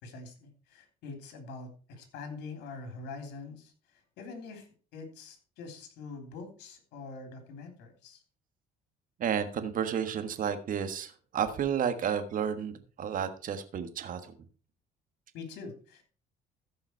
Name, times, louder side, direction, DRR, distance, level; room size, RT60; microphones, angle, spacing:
voice 1, 0.0-3.7 4.2-8.2 15.3-16.0, left 4 dB, 85° left, 5 dB, 3.4 m, -44 dB
voice 2, 9.2-14.4, right 8 dB, 55° right, 10 dB, 1.5 m, -32 dB
14.5 x 5.6 x 4.6 m, 0.37 s
cardioid pair, 110°, 17 cm